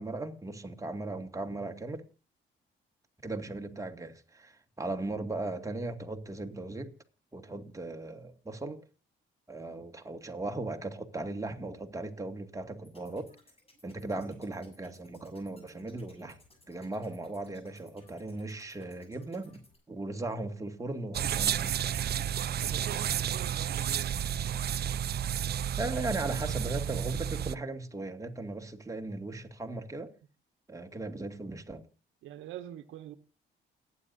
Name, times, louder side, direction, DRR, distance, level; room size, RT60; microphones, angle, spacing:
voice 1, 0.0-2.0 3.2-6.9 7.3-8.9 9.5-13.3 13.8-16.4 16.7-19.6 19.9-21.8 25.8-30.2 30.7-31.9, right 2 dB, 15° right, 2.1 m, -37 dB
sound 1, 12.8-19.8, left 2 dB, 30° left, 7.7 m, -61 dB
sound 2, 21.1-27.5, right 9 dB, 55° right, 0.6 m, -31 dB
voice 2, 22.6-24.1 32.2-33.2, right 11 dB, 90° right, 1.1 m, -44 dB
29.0 x 9.7 x 2.6 m
cardioid pair, 90°, 20 cm